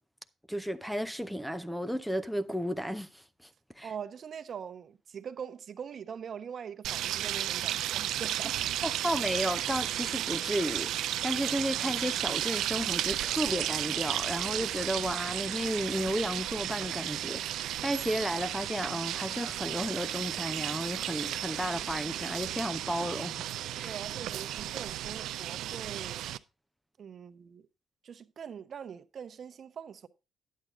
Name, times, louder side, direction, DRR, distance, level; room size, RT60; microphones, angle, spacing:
voice 1, 0.5-3.5 3.8-3.9 8.8-23.4 23.7-24.0, equal, ahead, 0.6 m, -33 dB
voice 2, 3.8-8.6 23.8-26.3 27.0-27.7 28.0-30.1, right 7 dB, 55° right, 0.8 m, -43 dB
sound 1, 6.8-26.4, right 12 dB, 85° right, 0.5 m, -33 dB
10.5 x 8.4 x 3.7 m
cardioid pair, 90°, 0 cm